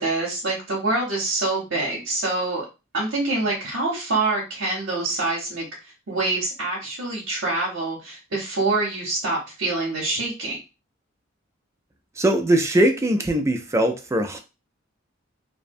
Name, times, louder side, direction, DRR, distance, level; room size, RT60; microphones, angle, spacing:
voice 1, 0.0-2.6 2.9-5.7 6.1-10.6, right 2 dB, 70° right, -3 dB, 0.7 m, -25 dB
voice 2, 12.2-14.4, right 1 dB, 15° right, 5 dB, 0.3 m, -21 dB
2.5 x 2.1 x 2.5 m, 0.28 s
head